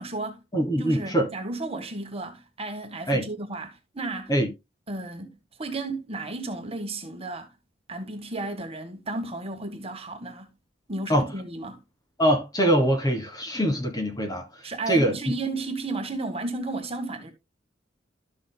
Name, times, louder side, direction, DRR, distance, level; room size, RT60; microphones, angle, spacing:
voice 1, 0.0-0.4 0.8-4.3 4.9-7.5 7.9-10.5 10.9-11.8 14.6-17.3, right 2 dB, 30° right, 1.5 m, -33 dB
voice 2, 0.5-1.3 3.1-3.3 4.3-4.5 11.1-11.3 12.2-14.5 14.9-15.1, right 1 dB, 20° left, 1.4 m, -23 dB
12.5 x 6.3 x 2.2 m
head